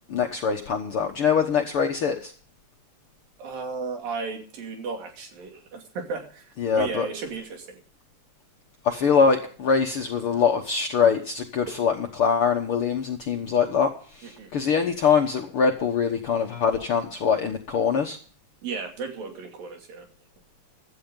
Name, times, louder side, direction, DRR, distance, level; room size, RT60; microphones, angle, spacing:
voice 1, 0.0-2.3 6.6-7.1 8.8-18.2, left 6 dB, 60° left, 3 dB, 1.5 m, -23 dB
voice 2, 3.4-7.8 14.2-14.5 18.6-20.1, right 4 dB, 80° right, 3 dB, 4.4 m, -34 dB
16.5 x 12.0 x 3.8 m, 0.43 s
omnidirectional pair, 4.0 m